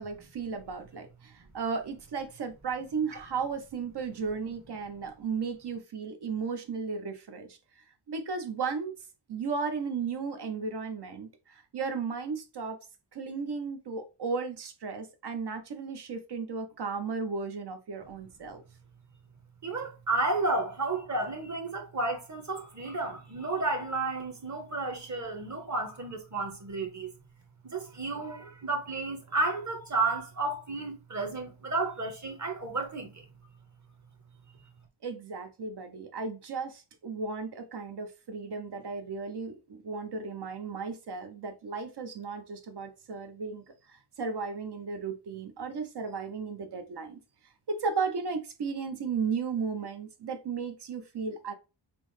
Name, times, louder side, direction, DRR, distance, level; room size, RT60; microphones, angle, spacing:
voice 1, 0.0-9.0 9.3-12.8 13.1-18.6 35.0-47.2 47.7-51.5, right 5 dB, 60° right, 0.7 m, -35 dB
voice 2, 19.6-27.1 27.6-33.2, right 3 dB, 40° right, 1.1 m, -32 dB
5.9 x 2.0 x 3.2 m
wide cardioid pair, 170°, 46 cm